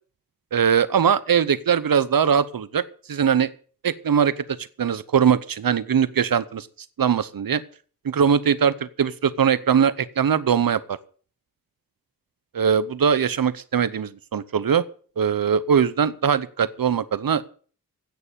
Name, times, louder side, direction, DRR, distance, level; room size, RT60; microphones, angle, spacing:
voice 1, 0.5-3.5 3.8-4.4 4.8-6.7 7.0-7.6 8.0-11.0 12.5-14.8 15.2-17.5, right 7 dB, 90° right, 16 dB, 0.8 m, -21 dB
16.0 x 6.8 x 8.5 m, 0.43 s
cardioid pair, 45°, 34 cm